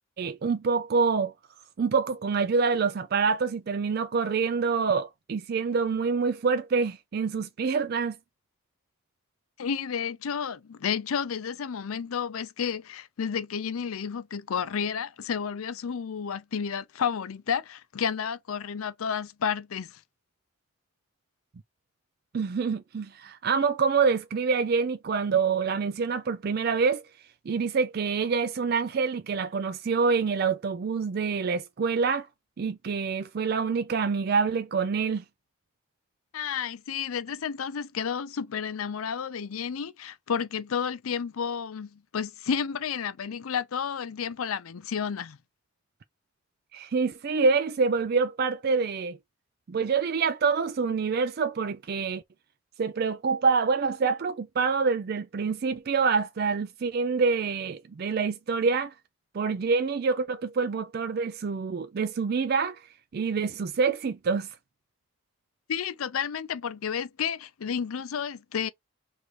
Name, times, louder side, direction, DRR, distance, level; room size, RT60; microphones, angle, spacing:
voice 1, 0.2-1.3 1.8-8.2 22.3-27.0 27.5-32.3 32.6-35.2 46.7-49.2 49.7-52.2 52.8-58.9 59.3-62.8 63.1-64.5, right 5 dB, 50° right, 0.4 m, -26 dB
voice 2, 9.6-20.0 36.3-45.4 65.7-68.7, left 7 dB, 85° left, 0.5 m, -31 dB
3.2 x 2.6 x 4.5 m
head